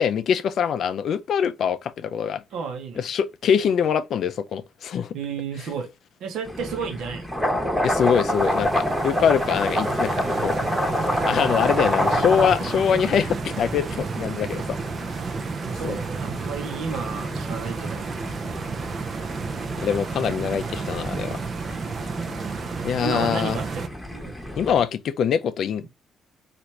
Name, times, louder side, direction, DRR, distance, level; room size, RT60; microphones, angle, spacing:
voice 1, 0.0-2.4 3.0-5.1 7.8-10.1 10.4-10.5 11.2-14.8 15.8-16.0 19.8-21.4 22.8-23.6 24.6-25.8, left 7 dB, 65° left, 0.3 m, -23 dB
voice 2, 2.5-3.1 5.1-5.9 6.2-7.7 15.6-18.1 23.0-24.4, right 5 dB, 80° right, 0.8 m, -32 dB
sound 1, 6.5-24.8, equal, ahead, 0.9 m, -29 dB
Stream, 7.8-23.9, right 5 dB, 50° right, 0.4 m, -32 dB
2.9 x 2.5 x 3.2 m
cardioid pair, 90°, 0 cm